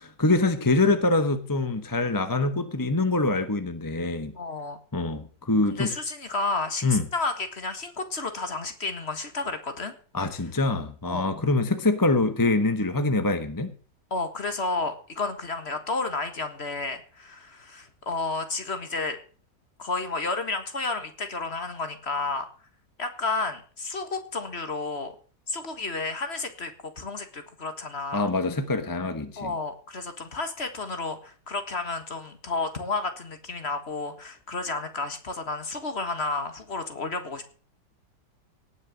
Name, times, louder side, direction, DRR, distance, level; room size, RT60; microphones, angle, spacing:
voice 1, 0.0-4.3 4.9-5.9 6.8-7.0 10.1-13.7 28.1-29.5, left 2 dB, 15° left, 0.9 m, -24 dB
voice 2, 4.3-4.8 5.7-9.9 11.0-11.2 14.1-19.2 19.8-22.5 23.0-25.1 25.5-28.3 29.4-37.5, left 3 dB, 40° left, 1.8 m, -31 dB
18.0 x 6.5 x 7.4 m
omnidirectional pair, 1.9 m